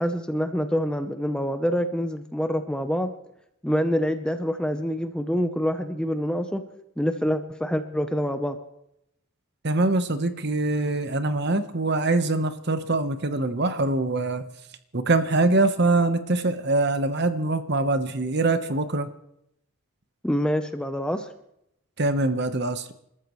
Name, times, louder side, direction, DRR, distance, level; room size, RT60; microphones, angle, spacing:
voice 1, 0.0-3.1 3.6-6.6 7.0-8.6 20.2-21.3, equal, 5° left, 8 dB, 0.7 m, -26 dB
voice 2, 9.6-14.4 14.9-19.1 22.0-22.9, right 2 dB, 50° right, 10 dB, 1.1 m, -23 dB
28.5 x 13.5 x 3.1 m, 0.78 s
head